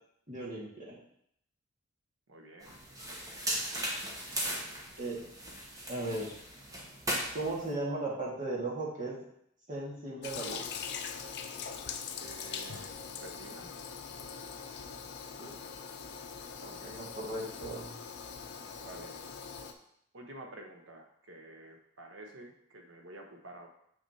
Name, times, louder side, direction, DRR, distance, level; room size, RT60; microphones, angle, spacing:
voice 1, 0.3-1.0 5.0-5.2 5.9-6.4 7.3-9.2 9.7-10.6 15.4-15.5 16.8-18.0, right 2 dB, 40° right, -4 dB, 1.9 m, -36 dB
voice 2, 2.3-2.7 4.4-4.6 11.1-11.2 12.2-13.7 16.6-17.0 18.8-19.2 20.1-23.7, right 1 dB, 65° right, 2 dB, 1.0 m, -50 dB
sound 1, 2.6-7.7, right 1 dB, 15° right, 1.0 m, -37 dB
Toilet flush, 10.2-19.7, left 6 dB, 55° left, 0.6 m, -42 dB
6.9 x 6.1 x 2.8 m, 0.72 s
head